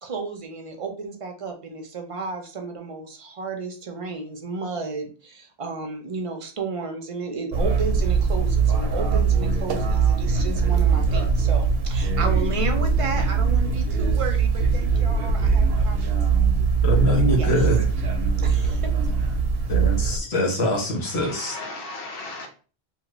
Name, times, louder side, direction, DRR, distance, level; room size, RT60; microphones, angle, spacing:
voice 1, 0.0-16.3 17.3-17.7 18.4-18.9, right 4 dB, 40° right, 0.5 m, -33 dB
sound 1, 7.5-20.2, right 5 dB, 75° right, 0.8 m, -21 dB
voice 2, 16.8-17.8 19.7-21.6, left 1 dB, 85° left, 1.2 m, -23 dB
voice 3, 21.0-22.5, left 2 dB, 65° left, 1.0 m, -36 dB
2.8 x 2.4 x 3.0 m
omnidirectional pair, 1.1 m